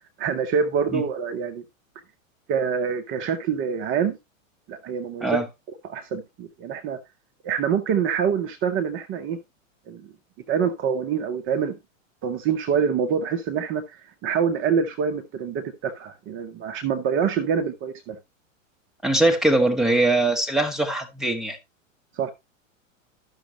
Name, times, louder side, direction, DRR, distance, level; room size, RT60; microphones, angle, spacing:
voice 1, 0.2-1.6 2.5-4.2 4.7-5.4 5.8-7.0 7.4-9.4 9.9-10.1 10.5-11.8 12.2-18.2 22.1-22.3, right 7 dB, 30° right, 0.7 m, -26 dB
voice 2, 19.0-21.6, right 2 dB, ahead, 1.0 m, -21 dB
12.0 x 6.3 x 2.9 m
hypercardioid pair, 130°, 40 cm